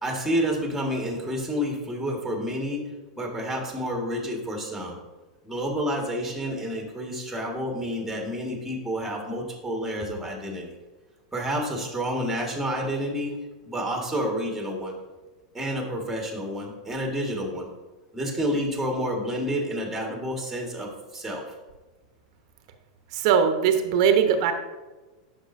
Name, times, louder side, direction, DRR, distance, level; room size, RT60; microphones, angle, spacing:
voice 1, 0.0-2.9 3.2-5.0 5.4-10.8 11.3-13.4 13.6-15.0 15.5-17.7 18.1-21.6, equal, 5° right, 1 dB, 1.7 m, -29 dB
voice 2, 23.1-24.5, right 7 dB, 60° right, 7 dB, 0.9 m, -20 dB
10.0 x 6.4 x 2.7 m, 1.2 s
hypercardioid pair, 120°, 4 cm